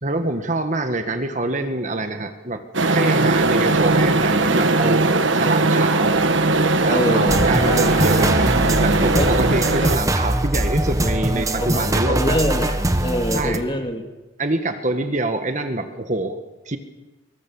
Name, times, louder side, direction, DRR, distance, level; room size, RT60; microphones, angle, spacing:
voice 1, 0.0-2.6 2.9-6.2 6.8-8.5 8.8-12.4 13.3-13.6 14.4-16.4 16.7-16.8, right 2 dB, 40° right, 7 dB, 1.8 m, -25 dB
sound 1, 2.7-10.0, right 2 dB, 75° right, 1.4 m, -19 dB
voice 2, 6.9-7.9 9.1-9.5 9.8-9.9 11.6-14.0, left 1 dB, 25° left, 4 dB, 2.5 m, -25 dB
sound 2, 7.3-13.6, right 1 dB, 15° right, 1.3 m, -22 dB
25.5 x 22.5 x 7.2 m, 1.1 s
head